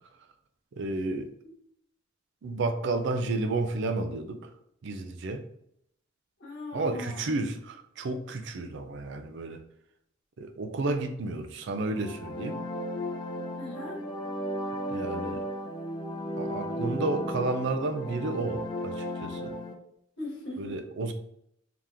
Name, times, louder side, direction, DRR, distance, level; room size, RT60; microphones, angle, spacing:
voice 1, 0.7-1.3 2.4-4.5 4.8-5.4 6.7-9.6 10.4-12.6 14.9-15.5 16.4-19.5 20.6-21.1, right 2 dB, 65° right, 7 dB, 0.4 m, -31 dB
voice 2, 6.4-7.4 13.6-14.0 20.2-20.8, left 2 dB, 60° left, -2 dB, 1.3 m, -39 dB
sound 1, 11.8-19.7, equal, 25° left, 0.6 m, -35 dB
3.7 x 2.9 x 3.4 m, 0.72 s
head